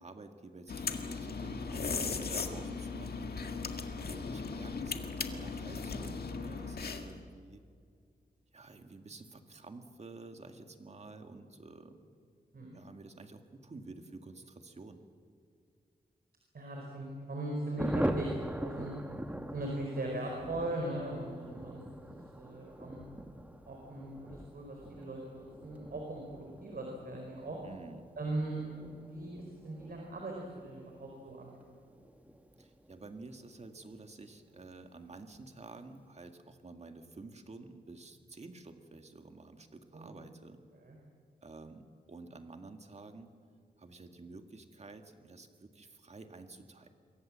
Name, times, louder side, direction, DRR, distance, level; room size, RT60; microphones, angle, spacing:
voice 1, 0.0-3.4 4.1-7.6 8.5-12.0 12.7-15.0 27.6-28.0 32.6-40.6 41.4-41.8 42.1-43.3 43.8-46.9, right 3 dB, 40° right, 6 dB, 2.0 m, -50 dB
sound 1, 0.7-7.2, left 4 dB, 65° left, 1.8 m, -37 dB
voice 2, 16.5-18.9 19.5-23.0 23.7-27.6 28.2-28.6 28.9-31.5 39.9-40.1 40.8-41.0, right 1 dB, 60° right, 0 dB, 4.7 m, -39 dB
Thunder, 17.8-33.9 34.2-34.3 34.6-34.7 35.0-35.4, right 1 dB, 10° right, 1.3 m, -42 dB
27.0 x 23.0 x 7.6 m, 2.2 s
wide cardioid pair, 150°, 17 cm